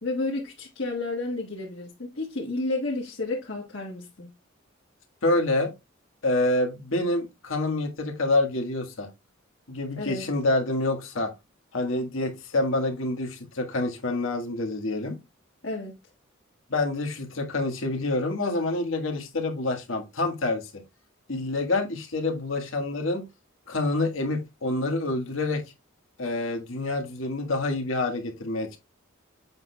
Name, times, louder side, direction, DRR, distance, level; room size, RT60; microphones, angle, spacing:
voice 1, 0.0-4.3 10.0-10.2 15.6-15.9, left 2 dB, 65° left, 1.6 m, -31 dB
voice 2, 5.2-5.7 6.2-9.1 9.7-11.3 11.7-15.2 16.7-20.8 21.3-23.2 23.7-25.6 26.2-28.8, left 2 dB, 85° left, 1.6 m, -27 dB
7.6 x 5.9 x 2.3 m
head